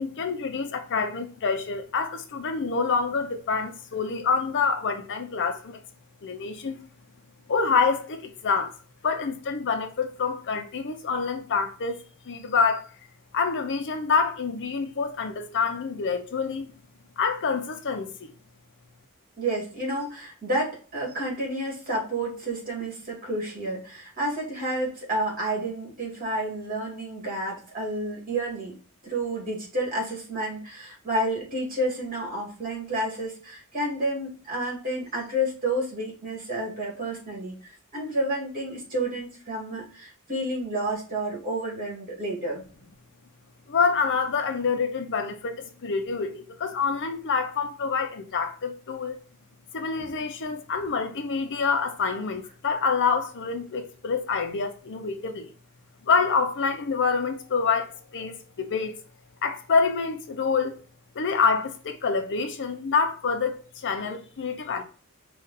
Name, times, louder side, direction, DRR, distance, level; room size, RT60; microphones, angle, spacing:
voice 1, 0.0-5.8 6.2-6.8 7.5-8.7 9.0-12.9 13.3-16.7 17.2-18.3 43.7-49.2 49.7-55.5 56.0-58.9 59.4-60.8 61.1-64.8, left 5 dB, 55° left, 0.6 m, -27 dB
voice 2, 19.4-28.8 29.0-42.6, right 1 dB, 40° right, 2.3 m, -30 dB
5.1 x 2.5 x 4.1 m
head